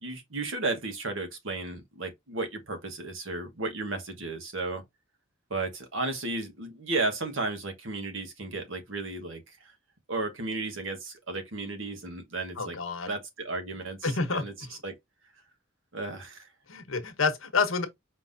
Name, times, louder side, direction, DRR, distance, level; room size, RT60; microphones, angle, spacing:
voice 1, 0.0-4.8 5.5-9.7 10.1-12.8 13.1-14.0 14.3-14.5 14.8-14.9 15.9-16.5, right 3 dB, 70° right, 1.4 m, -34 dB
voice 2, 12.6-13.1 14.0-14.8 16.7-17.9, left 4 dB, 80° left, 1.1 m, -29 dB
5.4 x 3.0 x 2.6 m
head